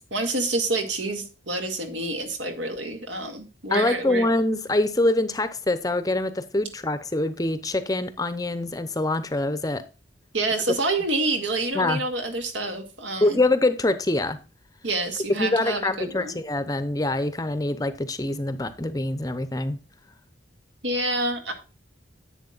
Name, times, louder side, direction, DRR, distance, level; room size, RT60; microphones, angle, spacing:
voice 1, 0.1-4.3 10.3-13.4 14.8-16.4 20.8-21.5, right 2 dB, 80° right, 2.3 m, -28 dB
voice 2, 3.7-9.8 11.7-12.0 13.2-14.4 15.3-19.8, left 2 dB, 20° left, 0.7 m, -24 dB
10.5 x 8.3 x 2.5 m
head